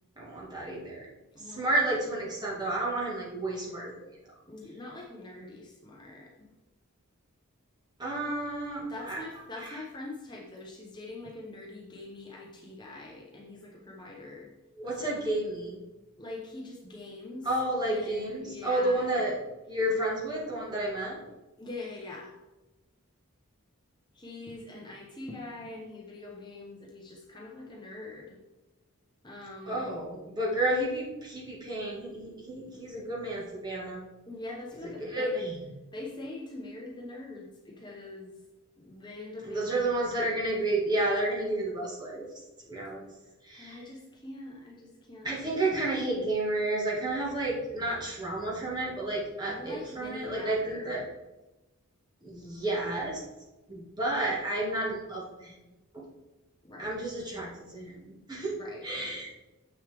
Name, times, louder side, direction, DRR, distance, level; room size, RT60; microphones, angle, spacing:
voice 1, 0.2-1.1 1.4-3.9 8.0-9.2 9.6-9.8 14.8-15.9 17.4-19.4 19.7-21.2 29.7-34.0 35.0-35.7 39.4-42.3 42.7-43.0 43.4-43.9 45.2-51.0 52.2-53.2 53.7-55.6 55.9-56.0 56.8-58.0 58.3-58.6 58.8-59.3, right 1 dB, 20° right, -5 dB, 1.8 m, -31 dB
voice 2, 4.5-6.5 8.8-14.5 15.0-15.1 16.2-17.5 17.8-19.2 21.6-22.3 24.1-28.4 29.2-29.9 34.3-35.3 35.9-38.3 38.8-39.9 43.5-45.7 49.4-51.1 56.6-57.0 58.6-59.1, left 2 dB, 20° left, -2 dB, 0.8 m, -43 dB
7.3 x 6.4 x 3.4 m, 1.1 s
head